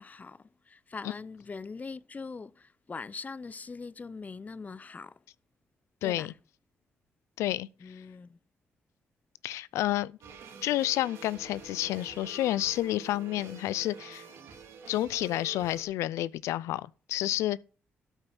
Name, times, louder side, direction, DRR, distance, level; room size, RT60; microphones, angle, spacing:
voice 1, 0.0-5.2 6.0-6.3 7.8-8.4, left 4 dB, 35° left, 0.6 m, -42 dB
voice 2, 6.0-6.3 7.4-7.9 9.4-10.1 10.6-14.3 14.9-17.6, left 14 dB, 85° left, 0.4 m, -30 dB
sound 1, 10.2-15.8, right 6 dB, 80° right, 3.0 m, -48 dB
Wind instrument woodwind instrument, 10.9-14.3, left 3 dB, 50° left, 5.2 m, -54 dB
12.5 x 5.4 x 5.7 m
supercardioid pair, 60°, 5 cm